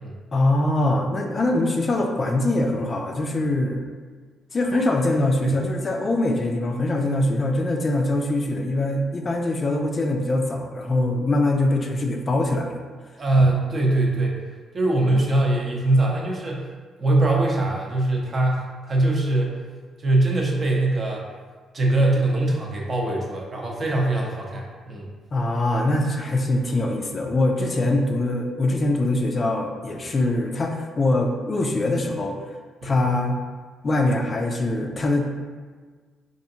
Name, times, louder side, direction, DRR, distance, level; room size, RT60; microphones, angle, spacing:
voice 1, 0.3-3.9 4.5-12.8 25.3-32.4 32.8-33.4 33.8-35.3, left 2 dB, 35° left, 2 dB, 0.4 m, -23 dB
voice 2, 13.2-14.4 14.7-16.7 17.0-19.6 20.0-21.2 21.7-25.1 27.8-27.9 32.8-33.0, right 2 dB, 40° right, -1 dB, 0.7 m, -22 dB
4.3 x 2.6 x 2.7 m, 1.5 s
cardioid pair, 90°, 0 cm